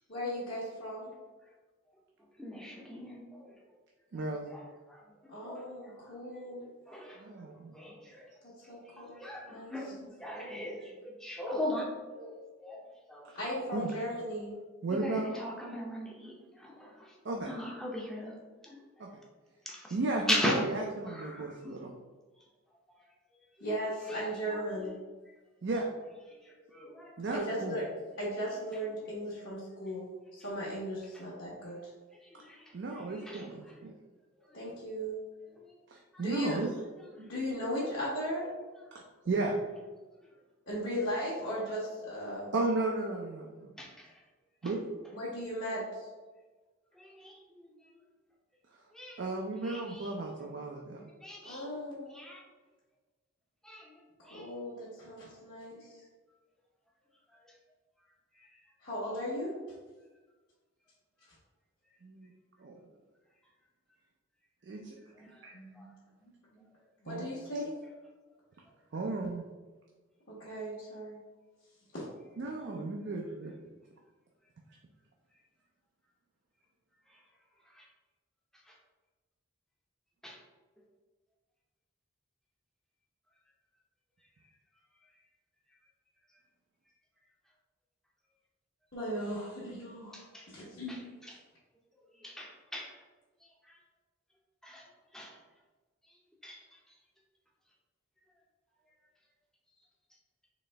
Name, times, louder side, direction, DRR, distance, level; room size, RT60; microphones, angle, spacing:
voice 1, 0.1-1.1 5.3-6.6 8.7-10.1 10.3-10.6 13.3-14.5 23.6-24.9 27.3-27.8 28.2-30.1 30.3-31.9 34.5-35.2 36.2-36.7 37.3-38.5 40.7-42.5 45.1-46.0 51.4-52.1 54.3-56.0 58.8-59.5 65.2-65.9 66.2-66.6 67.0-67.7 70.3-71.2 71.9-72.0 88.9-91.0, equal, 55° left, -10 dB, 1.1 m, -37 dB
voice 2, 2.4-3.5 4.5-7.2 7.7-8.3 8.9-9.9 10.2-13.3 13.7-13.9 14.9-17.1 17.5-18.3 18.6-18.8 19.7-20.0 20.3-20.6 21.1-21.8 23.6-24.2 24.5-24.9 26.3-27.4 32.2-33.8 35.7-35.8 36.1-36.2 43.8-44.1 44.6-44.7 46.9-47.7 48.9-49.2 49.6-50.1 51.2-51.7 52.1-52.4 53.6-53.9 54.2-54.5 57.3-57.4 58.4-58.5 65.2-65.4 65.7-65.9 77.7-77.9 78.7-78.8 80.2-80.4 90.1-90.5 90.9-91.3 92.1-93.0 93.7-93.8 94.6-94.9 95.1-95.3 96.4-96.8, left 1 dB, ahead, -3 dB, 0.6 m, -40 dB
voice 3, 4.1-4.5 7.2-7.8 13.7-13.9 14.8-15.3 17.2-17.5 19.0-19.1 19.9-21.9 25.6-25.9 27.2-27.8 32.7-33.9 36.2-36.7 37.2-37.3 39.3-39.6 42.5-43.7 44.6-44.8 49.2-51.0 62.0-62.3 62.6-62.8 64.6-64.8 65.4-65.5 67.1-67.3 68.9-69.4 72.4-73.5, right 3 dB, 55° right, 0 dB, 0.4 m, -34 dB
4.1 x 3.1 x 3.3 m, 1.3 s
head